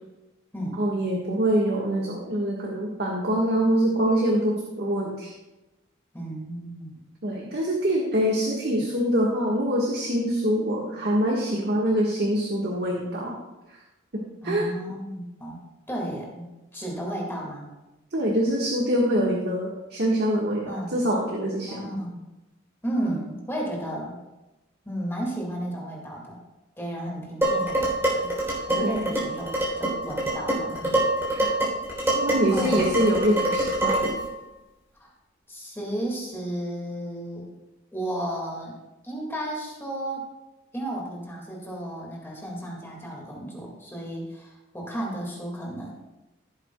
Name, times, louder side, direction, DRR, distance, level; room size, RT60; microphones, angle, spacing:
voice 1, 0.8-5.3 7.2-13.4 14.4-14.7 18.1-21.8 28.7-29.2 31.3-31.5 32.1-33.9, equal, 55° right, -2 dB, 1.5 m, -24 dB
voice 2, 6.1-7.0 8.7-8.8 14.4-15.6 15.9-17.7 20.6-21.0 21.7-22.2 22.8-24.1 24.8-26.4 26.8-28.3 28.6-31.0 31.4-31.6 32.5-32.9 35.0-35.1 35.5-37.5 37.9-38.7 39.0-40.3 40.7-45.9, right 1 dB, 10° left, -2 dB, 2.0 m, -33 dB
Dishes pots and pans, 27.4-34.3, right 1 dB, 10° right, 3.3 m, -25 dB
16.0 x 8.0 x 2.3 m, 1.0 s
head